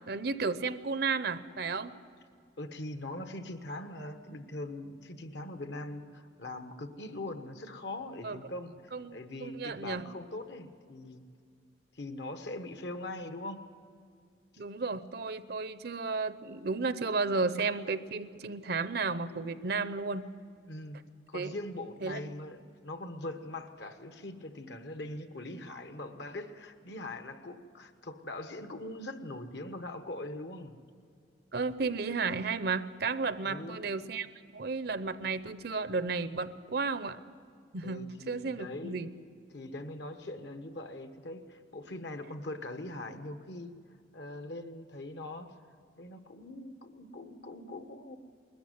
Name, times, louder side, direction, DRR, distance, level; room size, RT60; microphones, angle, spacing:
voice 1, 0.0-1.9 8.2-8.4 8.9-10.0 14.6-20.3 21.3-21.5 22.0-22.3 31.5-34.3 34.5-37.2 37.7-39.1, right 4 dB, 55° right, 13 dB, 0.7 m, -33 dB
voice 2, 2.6-11.3 11.9-13.7 20.7-21.0 21.3-30.8 33.4-33.8 37.8-39.0 39.5-43.7 44.1-45.6 46.0-48.2, left 2 dB, 60° left, 8 dB, 1.3 m, -42 dB
20.5 x 14.0 x 9.6 m, 2.3 s
head